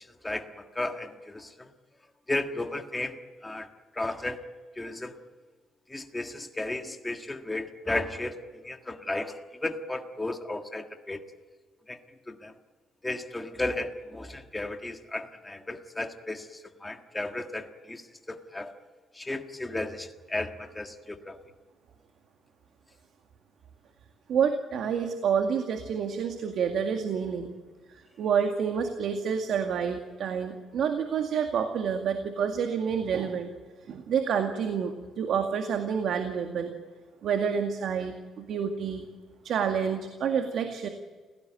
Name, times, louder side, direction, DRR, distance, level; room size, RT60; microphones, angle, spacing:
voice 1, 0.2-1.7 2.3-3.7 3.9-4.4 4.8-5.1 5.9-8.3 8.6-11.2 11.9-12.0 12.3-12.5 13.0-18.0 18.3-18.7 19.1-21.4, left 2 dB, 10° left, 5 dB, 1.6 m, -34 dB
voice 2, 24.3-27.5 28.2-33.5 33.9-36.7 37.2-39.0 39.4-40.9, right 7 dB, 60° right, 5 dB, 2.0 m, -28 dB
28.5 x 17.0 x 9.1 m, 1.4 s
cardioid pair, 160°, 0 cm